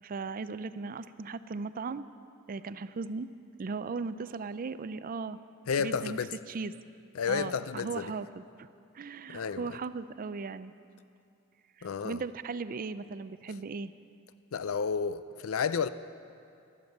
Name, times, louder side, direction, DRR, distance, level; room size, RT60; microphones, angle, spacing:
voice 1, 0.0-2.0 2.5-3.3 3.6-5.4 5.8-6.2 6.5-6.7 7.3-8.4 8.9-10.7 11.8-13.9, right 4 dB, 40° right, 0.4 m, -37 dB
voice 2, 5.7-6.3 7.1-8.1 9.3-9.7 11.8-12.2 14.5-15.9, left 6 dB, 70° left, 0.5 m, -31 dB
12.5 x 12.0 x 7.9 m
head